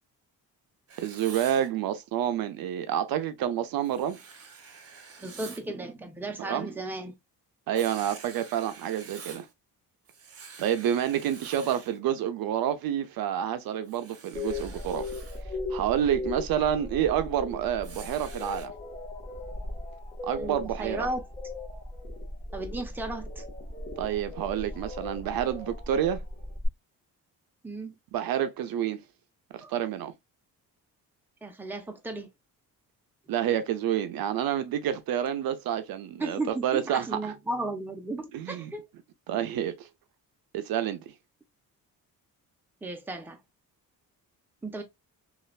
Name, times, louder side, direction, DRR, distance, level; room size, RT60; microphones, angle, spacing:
Writing, 0.9-1.7 3.8-5.7 7.7-9.5 10.1-12.0 13.8-15.4 17.8-18.7, right 5 dB, 40° right, 0.9 m, -47 dB
voice 1, 1.0-4.2 6.4-6.7 7.7-9.5 10.6-15.1 15.7-18.7 20.2-21.1 24.0-26.2 28.1-29.0 29.5-30.1 33.3-37.3 38.3-38.7 39.3-39.9 40.5-41.0, right 10 dB, 75° right, 0.5 m, -28 dB
voice 2, 5.2-7.1 20.3-21.3 22.5-23.4 27.6-27.9 29.6-29.7 31.4-32.3 36.2-38.9 42.8-43.4 44.6-44.8, right 2 dB, 5° right, 0.6 m, -35 dB
sound 1, 14.3-26.7, left 2 dB, 20° left, 0.9 m, -38 dB
3.1 x 2.4 x 2.3 m
cardioid pair, 125°, 36 cm